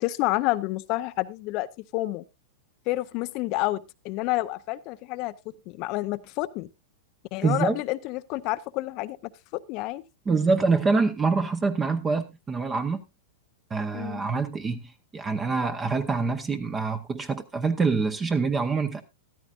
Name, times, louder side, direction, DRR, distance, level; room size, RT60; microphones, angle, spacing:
voice 1, 0.0-2.2 2.9-5.3 5.7-6.7 7.3-10.0 13.9-14.2, left 18 dB, 45° left, 0.5 m, -29 dB
voice 2, 7.4-7.8 10.3-13.0 13.7-19.0, right 4 dB, 20° right, 0.8 m, -25 dB
14.0 x 12.5 x 2.4 m
hypercardioid pair, 105°, 0 cm